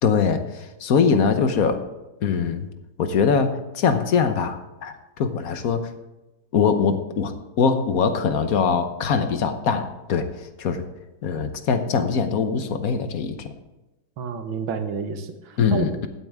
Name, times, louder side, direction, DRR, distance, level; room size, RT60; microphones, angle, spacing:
voice 1, 0.0-1.8 2.2-2.7 3.0-5.8 6.5-10.3 10.6-10.8 11.2-13.5 15.6-16.1, left 6 dB, 55° left, 8 dB, 1.1 m, -22 dB
voice 2, 14.2-16.1, right 6 dB, 70° right, 8 dB, 1.8 m, -29 dB
16.0 x 8.9 x 3.6 m, 1.0 s
omnidirectional pair, 2.3 m